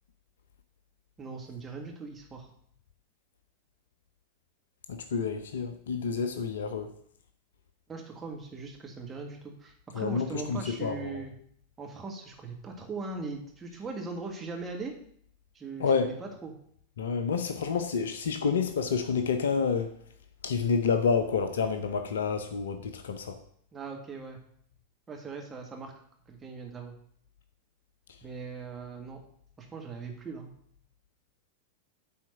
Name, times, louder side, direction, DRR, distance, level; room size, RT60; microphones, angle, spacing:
voice 1, 1.2-2.5 7.9-11.3 11.8-14.9 15.5-16.1 16.4-16.5 23.7-24.4 25.1-25.9 26.3-26.9 28.2-29.2 29.6-30.5, right 4 dB, 20° right, 1 dB, 1.7 m, -40 dB
voice 2, 4.9-6.9 9.9-11.3 15.8-16.1 17.0-19.9 20.4-23.4, left 5 dB, 65° left, 9 dB, 0.7 m, -29 dB
9.4 x 4.3 x 6.5 m, 0.63 s
figure-of-eight pair, 90°, 0 cm